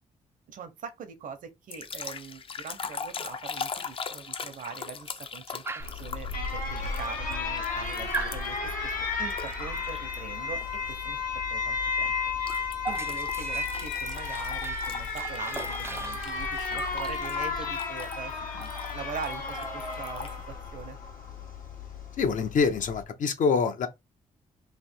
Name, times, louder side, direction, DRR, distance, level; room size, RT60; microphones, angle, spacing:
voice 1, 0.5-5.6 5.9-8.9 9.2-11.2 11.5-12.6 12.9-20.3 20.7-21.0, right 6 dB, 75° right, 1.0 m, -42 dB
sound 1, 1.7-8.7 9.3-10.2 10.6-10.9 12.5-20.4, left 5 dB, 40° left, 0.6 m, -41 dB
Dog, 5.7-6.1 6.9-7.0 7.3-7.8 8.1-8.4 9.6-9.9 11.7-11.9 12.2-14.9 15.2-17.0 18.3-18.4 18.7-18.9 19.2-20.5, right 3 dB, 20° right, 0.4 m, -39 dB
Alarm, 5.8-23.0, left 4 dB, 85° left, 1.4 m, -33 dB
voice 2, 22.2-23.9, left 5 dB, 70° left, 0.9 m, -25 dB
3.4 x 2.8 x 4.4 m
cardioid pair, 95°, 14 cm